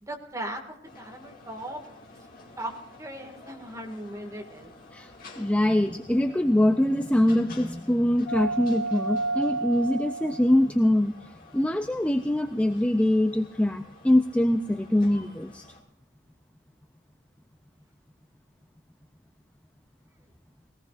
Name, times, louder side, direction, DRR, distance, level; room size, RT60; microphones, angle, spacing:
voice 1, 0.0-1.8 2.6-2.7 3.0-4.7, right 1 dB, 15° right, 2 dB, 2.0 m, -38 dB
sound 1, 0.9-15.8, right 2 dB, 50° left, 2.3 m, -38 dB
voice 2, 4.9-15.7, left 1 dB, 5° left, 7 dB, 0.5 m, -24 dB
20.0 x 18.0 x 2.5 m, 0.85 s
head